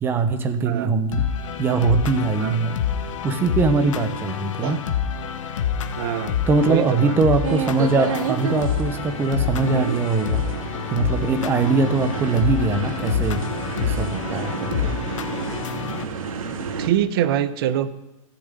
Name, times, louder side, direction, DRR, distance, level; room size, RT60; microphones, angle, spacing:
voice 1, 0.0-1.3 1.6-2.7 3.2-4.8 6.5-10.5 10.9-13.4 13.8-15.0, right 4 dB, 15° right, 8 dB, 0.9 m, -22 dB
voice 2, 0.6-1.0 2.4-2.6 4.6-4.8 6.0-7.2 16.8-17.9, right 11 dB, 45° right, 13 dB, 0.8 m, -24 dB
sound 1, 1.1-16.0, left 8 dB, 65° left, 1.1 m, -28 dB
sound 2, 7.4-16.9, right 6 dB, 85° right, 1.8 m, -30 dB
14.5 x 6.8 x 9.1 m, 0.95 s
hypercardioid pair, 160°, 17 cm